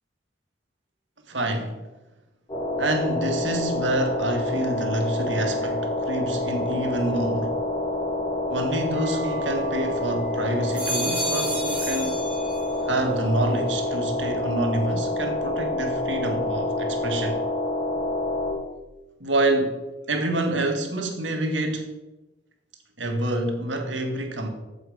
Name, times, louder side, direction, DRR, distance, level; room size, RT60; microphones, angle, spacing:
voice 1, 1.3-1.8 2.8-7.5 8.5-12.2 12.9-17.4 19.2-19.8 20.1-21.9 23.0-24.5, right 1 dB, 75° right, 2.0 m, -27 dB
sound 1, 2.5-18.5, left 2 dB, 25° left, 2.9 m, -27 dB
sound 2, 9.0-10.1 10.5-13.0 13.3-13.9, right 1 dB, 10° right, 4.0 m, -33 dB
14.5 x 7.6 x 5.1 m
head